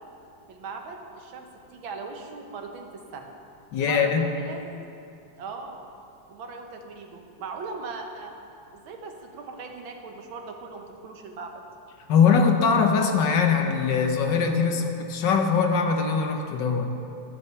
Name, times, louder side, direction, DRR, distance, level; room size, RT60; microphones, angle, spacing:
voice 1, 0.5-3.3 3.8-4.9 5.4-5.9 6.3-8.3 8.7-11.6, right 4 dB, 85° right, 3 dB, 1.9 m, -39 dB
voice 2, 3.7-4.3 12.1-16.9, left 5 dB, 70° left, 4 dB, 1.6 m, -22 dB
13.5 x 7.7 x 6.9 m, 2.6 s
omnidirectional pair, 2.1 m